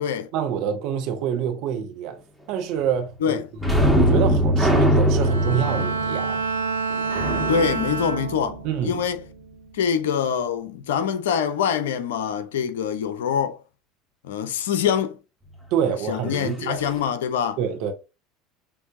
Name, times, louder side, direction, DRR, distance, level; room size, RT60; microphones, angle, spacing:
voice 1, 0.3-2.2 2.5-3.4 3.9-6.4 8.6-9.0 15.7-16.8 17.6-17.9, right 8 dB, 60° right, 1.0 m, -26 dB
sound 1, 3.6-9.0 16.3-16.5 16.8-17.0, equal, ahead, 1.5 m, -22 dB
Bowed string instrument, 5.2-8.8 9.2-9.6, right 4 dB, 85° right, 0.5 m, -28 dB
voice 2, 7.5-9.2 9.7-13.6 14.2-15.2 16.1-17.6, left 7 dB, 75° left, 0.6 m, -24 dB
6.9 x 2.7 x 2.6 m
hypercardioid pair, 75°, 0 cm